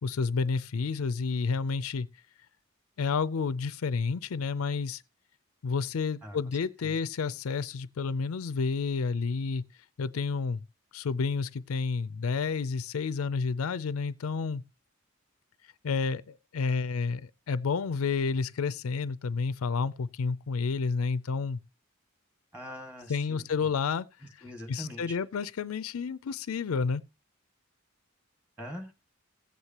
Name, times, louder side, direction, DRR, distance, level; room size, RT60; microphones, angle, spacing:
voice 1, 0.0-2.1 3.0-5.0 5.6-9.6 10.0-10.6 10.9-14.6 15.8-21.6 23.1-24.1 24.7-27.0, left 5 dB, 85° left, 0.5 m, -30 dB
voice 2, 6.2-7.0 22.5-23.7 24.4-25.2 28.6-28.9, equal, 10° right, 1.8 m, -43 dB
16.0 x 8.2 x 2.9 m
head